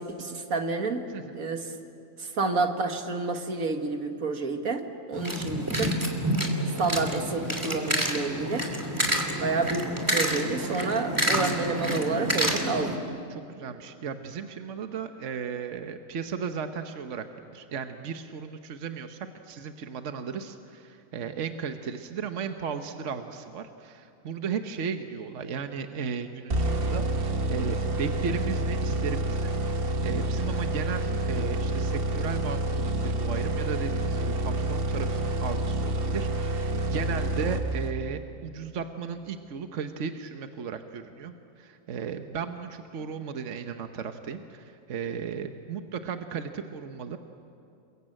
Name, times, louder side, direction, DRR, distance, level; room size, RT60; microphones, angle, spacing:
voice 1, 0.0-1.1 1.3-1.7 2.2-6.0 6.8-8.7 9.4-13.0, right 3 dB, 80° right, 5 dB, 2.1 m, -29 dB
sound 1, 5.1-13.0, right 1 dB, 15° right, 2.6 m, -28 dB
voice 2, 13.3-47.2, right 6 dB, 65° right, 7 dB, 1.3 m, -35 dB
sound 2, 26.5-38.2, right 1 dB, 45° right, 1.4 m, -28 dB
29.0 x 22.0 x 8.9 m, 2.6 s
omnidirectional pair, 1.4 m